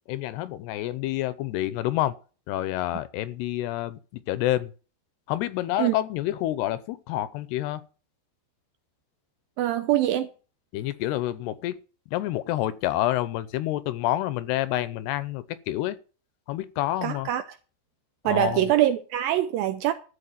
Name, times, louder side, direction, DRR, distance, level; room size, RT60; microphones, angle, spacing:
voice 1, 0.1-2.1 2.5-4.7 5.3-7.8 10.7-11.8 12.1-16.0 16.5-17.3 18.2-18.7, left 14 dB, 80° left, 2.7 m, -28 dB
voice 2, 9.6-10.3 17.0-17.4 18.3-19.9, right 13 dB, 80° right, 2.2 m, -23 dB
13.5 x 4.6 x 8.8 m
omnidirectional pair, 4.8 m